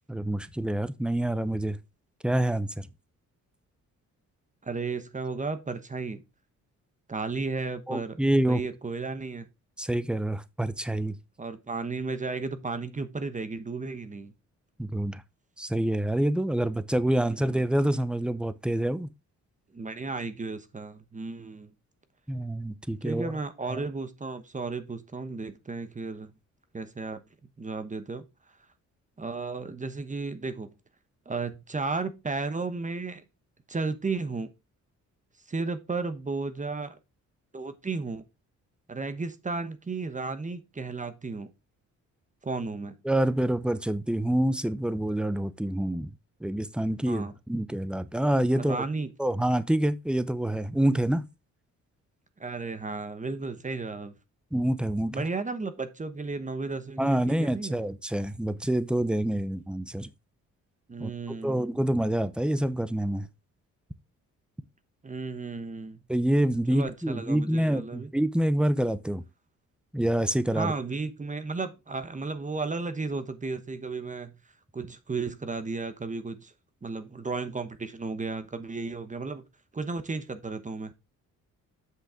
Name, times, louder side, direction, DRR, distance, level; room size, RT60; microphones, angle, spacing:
voice 1, 0.1-1.8 2.2-2.9 7.9-8.7 9.8-11.2 14.8-15.2 15.6-19.1 22.3-23.3 23.7-23.8 43.0-46.1 46.4-48.8 49.2-51.3 54.5-55.2 57.0-60.1 61.0-61.1 61.4-63.3 66.1-69.2 69.9-70.7, right 1 dB, 5° right, 0.7 m, -27 dB
voice 2, 4.6-6.2 7.1-8.2 8.5-9.5 11.4-14.3 17.2-17.6 19.7-21.7 23.0-26.3 26.7-27.2 27.6-28.2 29.2-30.7 31.3-33.2 33.7-34.5 35.5-37.0 37.5-38.2 38.9-41.5 42.4-42.9 47.1-47.3 48.7-49.1 52.4-54.1 55.1-57.8 60.9-61.7 65.0-66.0 66.7-68.1 70.5-74.4 74.7-76.5 76.8-79.4 79.7-80.9, right 3 dB, 25° right, 1.1 m, -34 dB
7.8 x 6.2 x 3.6 m
cardioid pair, 95°, 31 cm